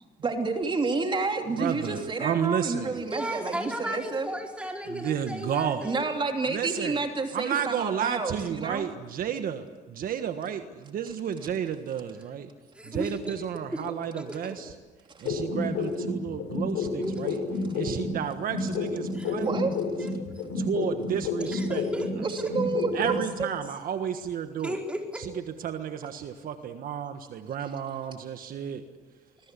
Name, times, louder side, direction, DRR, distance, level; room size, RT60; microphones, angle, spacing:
voice 1, 0.2-4.3 5.8-8.9 15.1-15.2 19.4-19.7 20.6-20.7 22.2-23.5, right 3 dB, 30° right, 4 dB, 2.9 m, -29 dB
voice 2, 1.6-3.0 4.9-5.9 6.5-7.0 7.3-9.6 9.9-12.5 12.8-14.7 15.2-17.4 17.7-19.4 20.6-21.8 22.9-24.8 25.2-25.3 25.6-28.8, right 8 dB, 55° right, 8 dB, 1.5 m, -32 dB
voice 3, 3.0-6.1 12.7-13.3 13.7-14.6 17.0-17.2 19.1-19.3 20.0-20.1 21.4-22.5 24.6-25.3, equal, 5° right, 1 dB, 4.6 m, -35 dB
sound 1, 15.3-18.2 18.5-22.2 22.5-23.2, left 3 dB, 85° left, 7.5 m, -30 dB
25.0 x 21.5 x 8.4 m, 1.3 s
cardioid pair, 110°, 17 cm